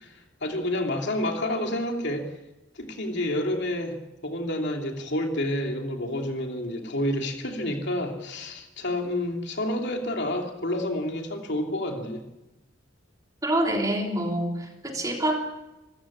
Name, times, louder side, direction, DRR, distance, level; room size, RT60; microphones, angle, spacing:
voice 1, 0.0-2.3 2.8-4.0 4.2-12.2, left 1 dB, 60° left, 3 dB, 2.9 m, -29 dB
voice 2, 13.4-15.4, right 1 dB, 15° right, 1 dB, 3.4 m, -26 dB
27.0 x 15.0 x 8.7 m, 0.99 s
head